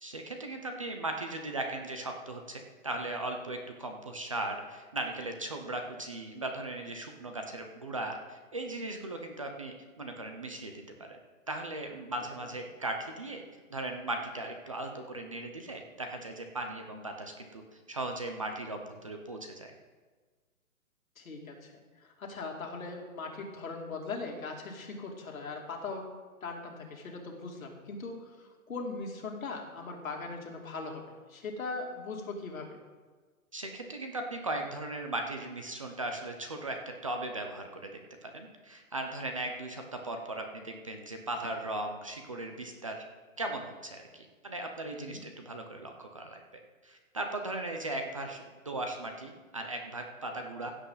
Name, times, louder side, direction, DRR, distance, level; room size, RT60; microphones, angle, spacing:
voice 1, 0.0-10.8 11.1-11.2 11.5-13.4 13.7-19.7 33.5-43.1 43.4-46.4 46.8-50.7, right 2 dB, 25° right, 4 dB, 0.6 m, -38 dB
voice 2, 21.2-21.7 22.2-26.1 26.4-32.7 44.9-45.2, left 3 dB, 70° left, 1 dB, 2.8 m, -40 dB
16.0 x 8.0 x 4.0 m, 1.4 s
hypercardioid pair, 170°, 42 cm